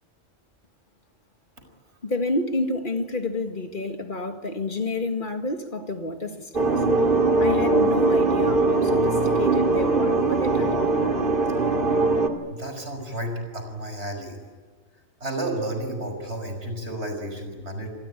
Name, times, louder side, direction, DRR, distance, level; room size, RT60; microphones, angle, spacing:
voice 1, 2.0-6.8 7.4-10.9, left 2 dB, 50° left, 2.1 m, -29 dB
sound 1, 6.5-12.3, right 3 dB, 55° right, 2.6 m, -21 dB
voice 2, 12.5-14.4 15.2-17.9, right 1 dB, 90° right, 5.9 m, -32 dB
25.5 x 20.5 x 9.9 m
omnidirectional pair, 1.1 m